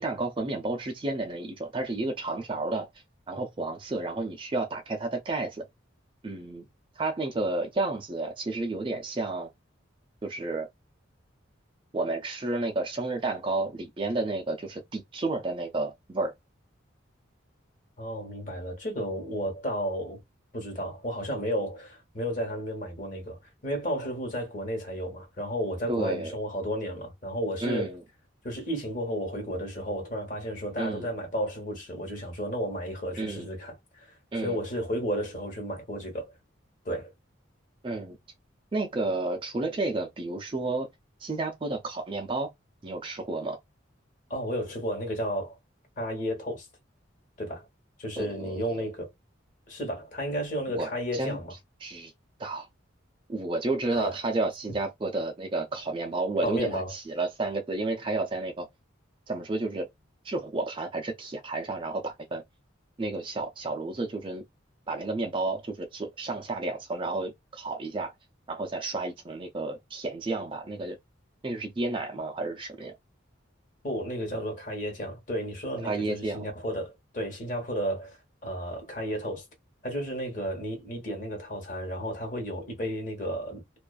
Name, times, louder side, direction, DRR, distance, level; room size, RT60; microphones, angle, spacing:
voice 1, 0.0-2.9 3.3-5.6 6.2-6.6 7.0-9.5 10.2-10.7 11.9-16.3 25.9-26.3 27.6-28.0 30.8-31.1 33.2-33.5 34.3-34.6 37.8-38.2 38.7-40.9 41.2-42.5 42.8-43.6 48.2-48.9 50.8-51.4 51.8-52.1 52.4-52.7 53.3-58.7 59.3-59.9 60.2-62.4 63.0-64.4 64.9-68.1 68.5-71.0 71.4-72.9 75.8-76.5, right 2 dB, 25° right, 0.3 m, -31 dB
voice 2, 18.0-20.2 20.5-28.0 28.4-36.3 36.8-37.1 44.3-45.6 46.0-46.7 47.4-47.7 48.0-49.1 49.7-51.5 53.9-54.1 54.7-54.8 56.4-56.9 73.8-79.4 79.8-83.8, equal, 40° left, 1.0 m, -33 dB
2.3 x 2.3 x 2.3 m
head